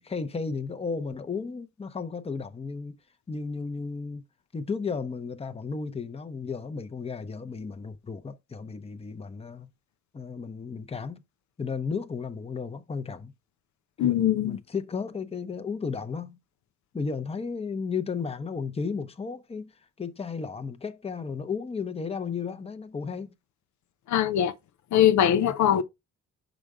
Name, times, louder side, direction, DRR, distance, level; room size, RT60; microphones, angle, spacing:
voice 1, 0.0-3.0 3.3-4.2 4.5-9.7 10.1-11.2 11.6-13.3 14.0-16.4 16.9-19.7 20.0-23.3 25.3-25.5, left 5 dB, 20° left, 0.8 m, -34 dB
voice 2, 14.0-14.6 24.1-24.5 24.9-25.8, left 10 dB, 70° left, 0.7 m, -22 dB
6.4 x 5.1 x 3.6 m
cardioid pair, 90°, 30 cm